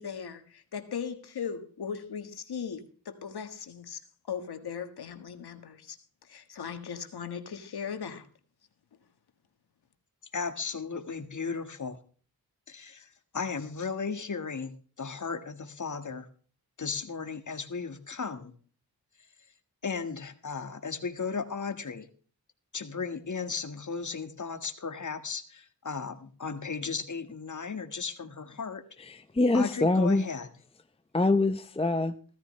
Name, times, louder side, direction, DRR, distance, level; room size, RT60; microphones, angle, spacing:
voice 1, 0.0-4.0 4.3-6.0 6.3-8.3, left 7 dB, 80° left, 8 dB, 1.7 m, -38 dB
voice 2, 10.3-12.0 12.7-16.3 16.8-18.5 19.8-22.1 22.7-28.8 29.5-30.5, left 5 dB, 50° left, 8 dB, 1.8 m, -35 dB
voice 3, 29.0-30.3 31.1-32.2, left 2 dB, 15° left, 10 dB, 0.7 m, -25 dB
16.0 x 14.0 x 3.3 m, 0.41 s
cardioid pair, 65°, 38 cm